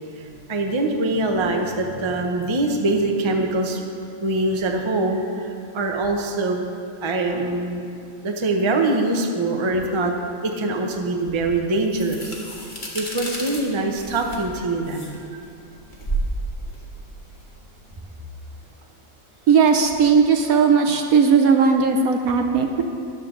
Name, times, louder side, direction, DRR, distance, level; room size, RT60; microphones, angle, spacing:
voice 1, 0.2-3.8 4.2-6.7 7.0-7.9 8.2-10.1 10.4-12.4 12.9-15.5, right 2 dB, 25° right, 2 dB, 0.6 m, -23 dB
sound 1, 11.3-18.0, right 2 dB, 30° left, 1.8 m, -32 dB
voice 2, 19.5-22.8, right 5 dB, 65° right, 5 dB, 1.0 m, -17 dB
13.0 x 11.0 x 3.8 m, 2.5 s
omnidirectional pair, 1.8 m